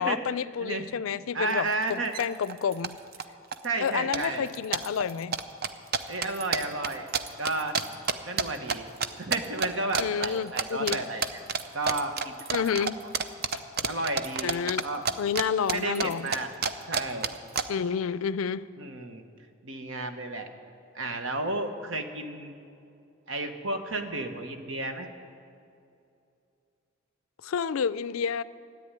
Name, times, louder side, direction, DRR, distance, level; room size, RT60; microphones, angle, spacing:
voice 1, 0.0-3.0 3.8-5.4 10.0-11.0 12.5-13.0 14.4-14.9 15.2-16.3 17.7-18.7 27.4-28.4, left 7 dB, 85° left, 17 dB, 0.4 m, -29 dB
voice 2, 1.3-2.1 3.6-4.5 6.1-7.1 7.4-7.7 8.2-8.8 9.2-11.2 11.7-12.3 12.8-12.9 13.9-15.0 15.7-16.5 16.9-17.3 18.8-19.2 19.6-20.5 20.9-22.5 23.3-25.1, right 2 dB, 70° right, 6 dB, 1.2 m, -32 dB
sound 1, 1.5-1.6 1.8-2.2 2.5-3.2 3.5-8.8 9.0-9.7 9.9-10.3 10.6-11.0 11.2-15.4 15.7-17.6, right 5 dB, 50° right, 0.6 m, -29 dB
13.5 x 8.7 x 9.8 m, 2.6 s
head